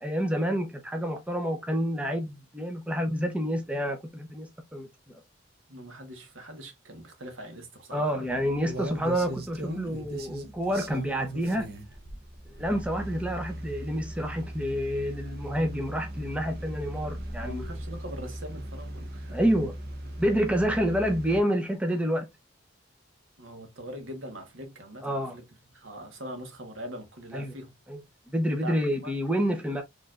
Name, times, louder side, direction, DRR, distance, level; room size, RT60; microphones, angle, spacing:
voice 1, 0.0-5.2 7.9-11.7 12.6-17.7 19.3-19.7 20.2-22.3 25.0-25.4 27.3-27.5 27.9-28.0 28.3-29.8, equal, 5° right, 0.6 m, -28 dB
voice 2, 5.7-8.3 17.4-19.4 23.4-25.4 25.7-27.7 28.6-29.1, equal, 90° right, 1.3 m, -42 dB
sound 1, 8.3-21.4, right 1 dB, 50° right, 0.8 m, -38 dB
4.7 x 3.1 x 2.4 m
head